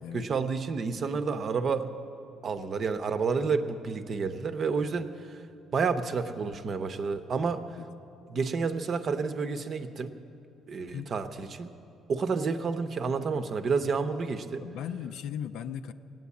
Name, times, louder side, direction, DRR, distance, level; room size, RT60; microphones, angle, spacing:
voice 1, 0.1-1.9 2.4-5.4 5.7-7.6 8.3-10.1 10.7-11.7 12.1-14.6, right 5 dB, 40° right, 9 dB, 0.7 m, -30 dB
voice 2, 10.8-11.2 14.6-15.9, left 8 dB, 80° left, 10 dB, 0.6 m, -37 dB
17.0 x 9.2 x 8.4 m, 2.7 s
cardioid pair, 150°, 0 cm